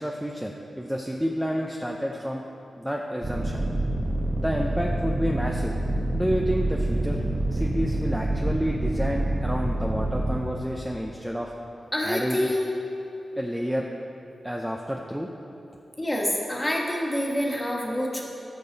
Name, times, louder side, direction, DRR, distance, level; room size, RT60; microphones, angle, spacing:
voice 1, 0.0-2.4 2.8-3.7 4.4-5.8 6.1-7.2 7.5-11.5 12.0-12.5 13.4-13.9 14.4-15.3, equal, 5° right, 0 dB, 0.6 m, -29 dB
sound 1, 3.2-10.4, right 1 dB, 25° right, 1.2 m, -27 dB
voice 2, 11.9-12.7 16.0-18.2, left 1 dB, 15° left, -2 dB, 1.6 m, -27 dB
17.5 x 6.8 x 4.0 m, 2.9 s
wide cardioid pair, 150°, 0 cm